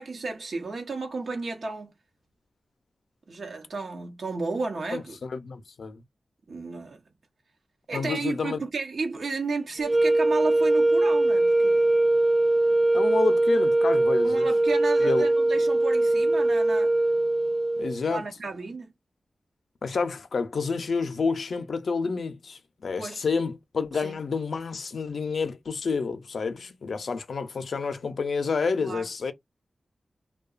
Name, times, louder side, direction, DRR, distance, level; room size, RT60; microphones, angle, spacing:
voice 1, 0.0-1.9 3.3-5.2 6.5-7.0 7.9-11.9 14.2-16.9 18.1-18.9 23.0-23.2 23.9-24.2 28.8-29.1, right 3 dB, 75° right, 0.8 m, -33 dB
voice 2, 4.9-6.0 7.9-8.6 12.9-14.5 15.0-15.3 17.8-18.2 19.8-29.3, left 5 dB, 75° left, 0.4 m, -29 dB
sound 1, 9.8-18.0, right 2 dB, 15° right, 0.4 m, -22 dB
2.8 x 2.2 x 2.3 m
wide cardioid pair, 100°, 0 cm